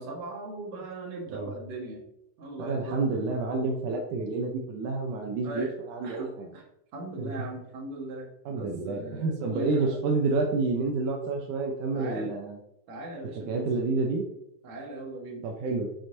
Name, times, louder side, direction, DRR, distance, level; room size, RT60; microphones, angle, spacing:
voice 1, 0.0-2.0 2.4-3.0 5.4-5.7 6.0-6.6 6.9-10.0 11.9-12.3 12.9-13.7 14.6-15.5, right 1 dB, 65° right, -1 dB, 2.8 m, -38 dB
voice 2, 2.6-6.5 7.2-7.3 8.5-12.6 13.5-14.2 15.4-15.9, right 3 dB, 85° right, 1 dB, 2.4 m, -29 dB
9.7 x 6.4 x 2.7 m, 0.81 s
omnidirectional pair, 3.4 m